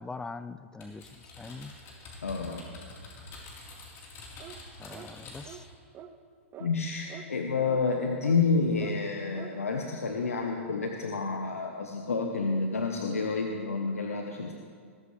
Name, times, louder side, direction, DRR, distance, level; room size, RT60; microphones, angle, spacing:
voice 1, 0.0-1.7 4.8-5.6, left 3 dB, 10° left, 14 dB, 0.5 m, -42 dB
Typing, 0.8-5.7, left 3 dB, 35° left, 4.0 m, -47 dB
voice 2, 2.2-2.6 6.6-14.5, left 4 dB, 90° left, 3 dB, 1.1 m, -29 dB
sound 1, 4.4-4.6 4.9-5.1 5.4-5.6 5.9-6.1 6.5-6.7 7.1-7.3 7.6-7.8 8.2-8.4 8.8-9.0 9.3-9.5, right 9 dB, 30° right, 0.9 m, -45 dB
20.0 x 14.0 x 3.4 m, 2.1 s
hypercardioid pair, 115°, 7 cm